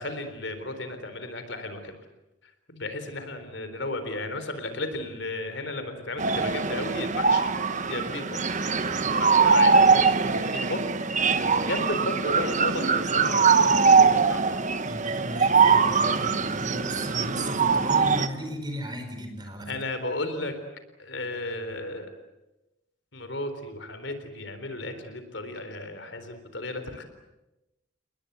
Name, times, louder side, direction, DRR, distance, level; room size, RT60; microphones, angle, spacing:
voice 1, 0.0-1.9 2.7-7.5 7.9-8.7 9.2-9.8 10.3-10.8 11.5-14.7 19.7-20.5 21.0-22.1 23.1-27.0, left 2 dB, 65° left, 9 dB, 3.9 m, -34 dB
sound 1, 6.2-18.3, right 5 dB, 40° right, 1.3 m, -22 dB
voice 2, 8.9-9.3 14.9-19.8, equal, 20° right, 5 dB, 5.0 m, -36 dB
30.0 x 20.5 x 8.3 m, 0.98 s
head